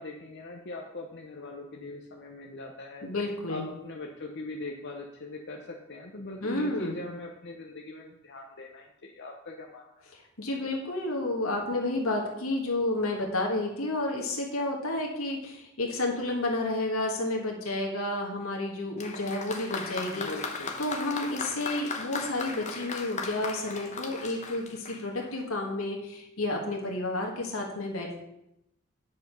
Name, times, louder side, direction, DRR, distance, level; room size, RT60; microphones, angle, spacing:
voice 1, 0.0-3.1 3.5-9.8 20.1-20.8, left 2 dB, 55° left, 1 dB, 0.8 m, -41 dB
voice 2, 3.0-3.6 6.4-7.1 10.1-20.3 20.8-28.2, left 2 dB, 75° left, 0 dB, 1.6 m, -31 dB
Applause, 19.0-25.4, left 4 dB, 35° left, 1.0 m, -37 dB
9.5 x 5.1 x 6.0 m, 0.86 s
head